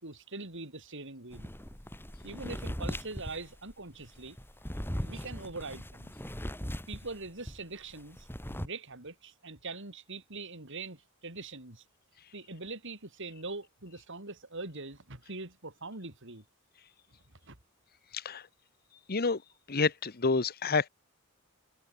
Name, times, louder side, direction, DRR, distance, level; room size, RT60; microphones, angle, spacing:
voice 1, 0.0-1.5 2.2-4.4 5.0-6.1 6.9-11.8 12.3-16.4 17.5-17.6, right 3 dB, 60° right, 5.1 m, -43 dB
sound 1, 1.3-7.6 7.9-8.7, equal, 10° left, 4.3 m, -39 dB
voice 2, 18.1-18.4 19.1-19.4 19.7-20.9, left 4 dB, 45° left, 1.1 m, -28 dB
head